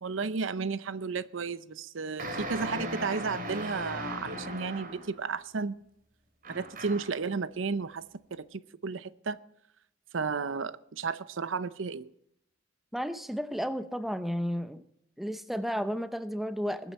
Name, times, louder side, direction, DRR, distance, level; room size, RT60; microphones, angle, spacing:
voice 1, 0.0-5.8 6.5-8.0 8.3-9.4 10.1-12.1, right 4 dB, 80° right, 0.7 m, -33 dB
sound 1, 2.2-5.2 6.4-7.2, right 1 dB, 45° right, 3.4 m, -38 dB
voice 2, 12.9-14.8 15.2-16.9, equal, ahead, 0.7 m, -33 dB
21.0 x 9.3 x 4.2 m
head